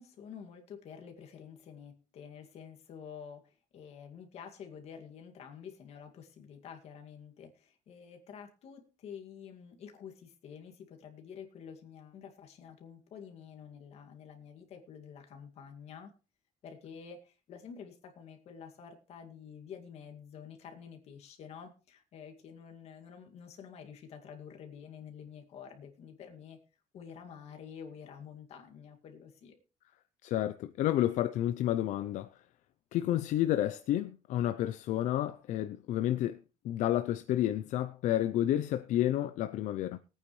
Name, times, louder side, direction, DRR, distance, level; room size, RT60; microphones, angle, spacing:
voice 1, 0.0-16.1 16.6-26.6 26.9-29.6, left 7 dB, 55° left, 2.3 m, -49 dB
voice 2, 30.2-32.3 32.9-40.0, left 12 dB, 80° left, 0.6 m, -30 dB
20.5 x 9.0 x 3.2 m
cardioid pair, 175°, 13 cm